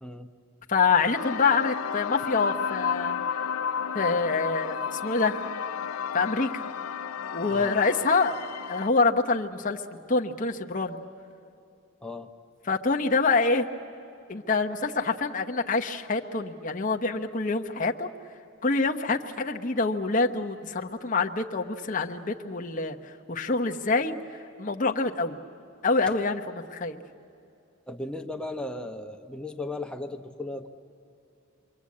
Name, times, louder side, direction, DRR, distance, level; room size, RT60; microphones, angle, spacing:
voice 1, 0.7-3.2 3.9-5.4 6.1-6.6 7.3-8.4 8.7-9.8 10.1-11.0 12.7-13.7 14.3-18.1 18.6-24.1 24.6-25.4 25.8-27.0, left 4 dB, 35° left, 2 dB, 1.0 m, -26 dB
sound 1, 1.1-8.9, left 7 dB, 85° left, 0.6 m, -32 dB
voice 2, 27.9-30.7, left 2 dB, 5° left, 4 dB, 1.0 m, -36 dB
28.5 x 23.5 x 8.6 m, 2.6 s
head